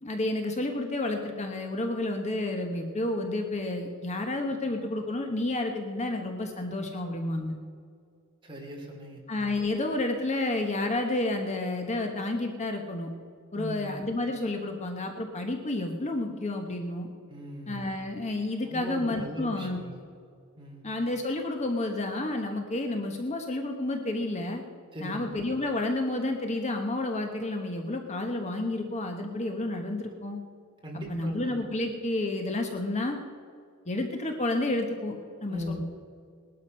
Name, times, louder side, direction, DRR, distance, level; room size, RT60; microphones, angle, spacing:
voice 1, 0.0-7.6 9.3-13.1 13.5-17.1 17.7-19.8 20.8-24.6 25.0-30.4 31.1-33.2 33.9-35.7, left 2 dB, 30° left, 4 dB, 1.1 m, -30 dB
voice 2, 8.4-9.2 13.5-14.0 17.3-17.9 18.7-20.0 20.6-20.9 24.9-25.3 30.8-31.5 35.5-35.7, equal, 25° right, -1 dB, 3.3 m, -39 dB
19.5 x 12.0 x 5.5 m, 2.2 s
head